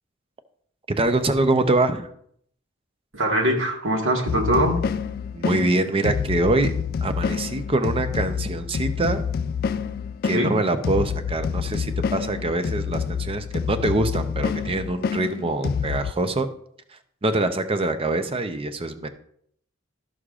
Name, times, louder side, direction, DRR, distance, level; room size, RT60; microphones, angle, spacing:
voice 1, 0.9-2.1 5.3-6.7 7.0-9.2 10.2-16.5 17.2-19.1, right 2 dB, 30° right, 9 dB, 0.6 m, -24 dB
voice 2, 3.1-4.8 10.3-10.6, right 1 dB, 70° right, 1 dB, 1.5 m, -22 dB
sound 1, 4.3-16.1, left 6 dB, 45° left, 0.3 m, -28 dB
12.5 x 6.4 x 2.4 m, 0.67 s
head